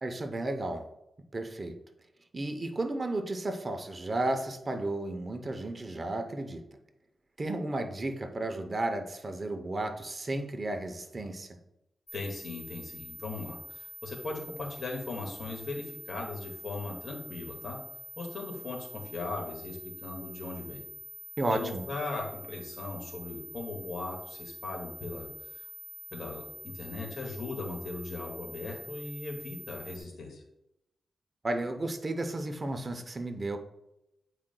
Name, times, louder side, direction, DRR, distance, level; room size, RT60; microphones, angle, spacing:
voice 1, 0.0-0.9 1.3-1.8 2.3-6.7 7.4-11.6 21.4-21.9 31.4-33.6, right 2 dB, 35° right, 7 dB, 0.7 m, -33 dB
voice 2, 12.1-17.8 18.2-20.8 21.5-25.6 26.1-30.4, left 3 dB, 65° left, 1 dB, 1.8 m, -38 dB
sound 1, 12.1-30.0, left 1 dB, 35° left, 1.5 m, -46 dB
9.1 x 4.8 x 2.2 m, 0.86 s
cardioid pair, 85°, 0 cm